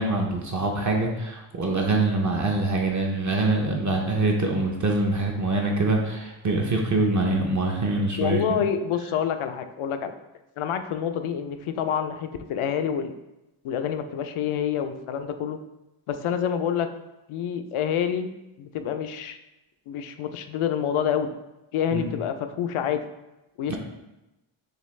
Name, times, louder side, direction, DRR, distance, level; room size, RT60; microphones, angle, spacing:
voice 1, 0.0-8.6 21.9-22.1 23.7-23.8, right 2 dB, 40° right, 0 dB, 0.6 m, -24 dB
voice 2, 8.2-10.1 10.6-13.1 13.6-15.6 16.1-16.9 17.3-18.3 18.6-19.4 19.9-21.3 21.7-23.0 23.6-23.8, left 8 dB, 80° left, 8 dB, 0.5 m, -27 dB
6.5 x 2.3 x 3.2 m, 0.97 s
wide cardioid pair, 135°, 49 cm